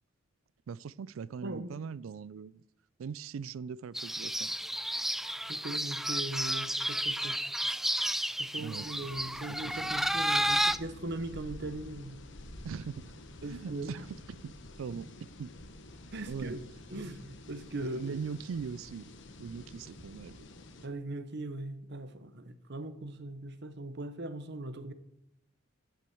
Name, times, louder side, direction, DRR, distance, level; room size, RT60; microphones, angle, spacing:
voice 1, 0.7-2.6 3.0-4.6 8.6-8.9 9.6-9.9 12.6-13.1 13.4-15.1 15.4-15.5 16.2-16.6 17.8-19.1 19.4-20.4, right 6 dB, 90° right, 0.4 m, -41 dB
voice 2, 1.4-1.7 5.5-7.4 8.4-12.2 13.4-14.0 14.9-15.0 16.1-16.6 16.9-18.2 20.8-24.9, right 2 dB, 60° right, 1.0 m, -40 dB
sound 1, 3.9-10.8, right 1 dB, ahead, 0.3 m, -32 dB
sound 2, 8.7-20.9, left 1 dB, 65° left, 1.3 m, -50 dB
8.8 x 8.4 x 7.8 m
head